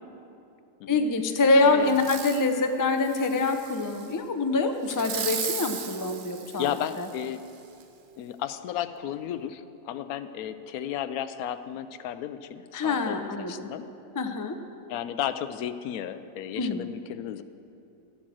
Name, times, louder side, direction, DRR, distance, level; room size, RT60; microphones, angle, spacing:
voice 1, 0.9-6.7 7.0-7.1 12.7-13.7 14.2-14.5 16.6-16.9, left 3 dB, 35° left, 6 dB, 0.3 m, -25 dB
voice 2, 1.6-2.0 6.6-7.4 8.2-13.8 14.9-17.4, left 10 dB, 75° left, 12 dB, 1.0 m, -33 dB
Fireworks, 1.9-2.5 3.0-4.1 4.9-7.2 7.8-7.9, right 7 dB, 50° right, 0.6 m, -36 dB
12.5 x 8.4 x 7.5 m, 2.8 s
omnidirectional pair, 1.6 m